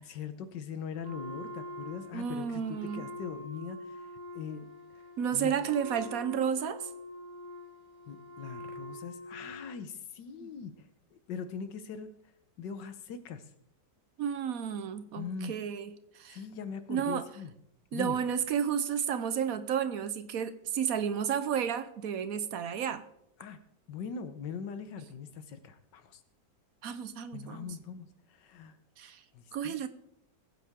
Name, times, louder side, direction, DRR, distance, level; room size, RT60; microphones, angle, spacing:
voice 1, 0.0-4.1 4.3-4.7 5.3-5.5 8.1-10.7 11.1-12.1 12.6-13.4 15.2-15.5 16.3-17.5 17.9-18.2 23.4-23.6 23.9-26.2 27.3-28.8 29.3-29.7, left 6 dB, 80° left, 1.6 m, -41 dB
Wind instrument woodwind instrument, 1.0-9.8, left 1 dB, 30° right, 1.3 m, -45 dB
voice 2, 2.1-3.1 5.2-6.9 10.4-10.5 14.2-16.4 16.9-17.3 17.9-23.0 26.8-27.7 29.0-29.2 29.5-29.9, right 8 dB, 60° right, 1.1 m, -32 dB
20.5 x 8.7 x 3.6 m
omnidirectional pair, 1.9 m